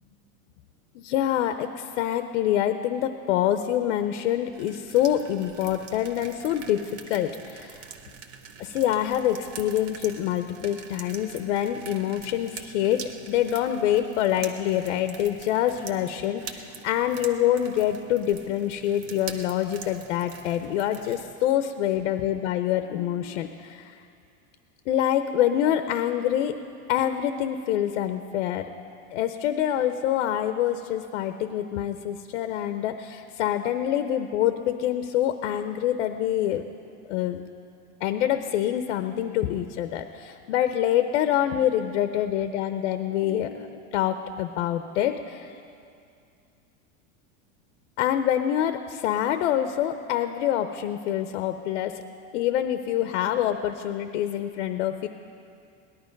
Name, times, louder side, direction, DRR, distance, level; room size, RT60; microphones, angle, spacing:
voice 1, 0.9-7.8 8.6-23.9 24.9-26.6 26.9-28.7 29.1-36.6 37.1-37.4 38.0-45.6 48.0-52.0 52.3-55.1, left 11 dB, 65° left, 9 dB, 0.8 m, -26 dB
sound 1, 4.5-21.3, right 6 dB, 35° right, 0.9 m, -44 dB
18.5 x 11.5 x 5.2 m, 2.5 s
supercardioid pair, 160°, 39 cm